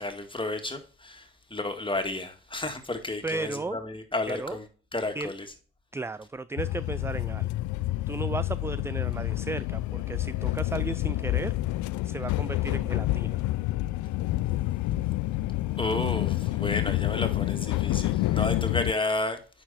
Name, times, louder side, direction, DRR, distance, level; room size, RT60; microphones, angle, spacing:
voice 1, 0.0-4.7 4.9-5.5 15.8-19.4, left 2 dB, 15° left, 2.0 m, -32 dB
voice 2, 3.2-3.8 4.3-4.6 5.1-5.3 5.9-7.5 8.1-11.5 12.0-13.4, right 3 dB, 10° right, 0.3 m, -35 dB
sound 1, 6.6-18.9, left 16 dB, 70° left, 0.5 m, -28 dB
9.9 x 4.6 x 4.2 m
hypercardioid pair, 45°, 30 cm